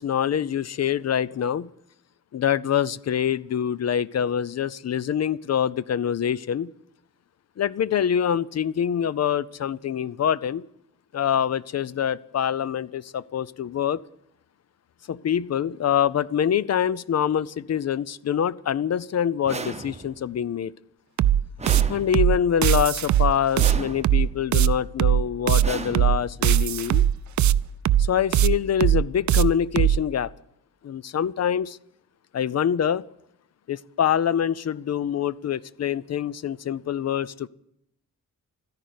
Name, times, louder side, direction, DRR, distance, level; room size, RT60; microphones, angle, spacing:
voice 1, 0.0-1.7 2.3-6.7 7.6-10.6 11.1-14.0 15.1-20.7 21.9-27.0 28.1-30.3 30.8-31.8 32.3-33.0 33.7-37.5, left 9 dB, 50° left, 0.5 m, -25 dB
sound 1, 19.5-20.3 21.6-22.5 23.6-24.4 25.6-26.5, right 3 dB, 20° right, 0.9 m, -35 dB
sound 2, 21.2-30.0, right 11 dB, 60° right, 0.5 m, -20 dB
13.5 x 10.5 x 9.4 m
wide cardioid pair, 155°, 33 cm